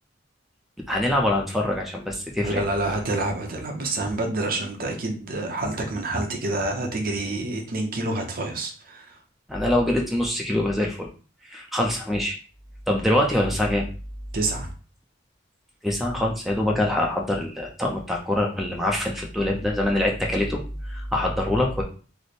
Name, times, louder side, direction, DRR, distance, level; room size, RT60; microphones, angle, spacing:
voice 1, 0.9-2.6 9.5-11.1 11.4-12.4 12.9-13.9 15.8-20.6 20.9-21.8, left 1 dB, ahead, -1 dB, 0.4 m, -24 dB
voice 2, 2.4-9.2 14.3-14.7, right 2 dB, 50° right, 3 dB, 0.6 m, -28 dB
3.2 x 2.1 x 4.0 m, 0.38 s
head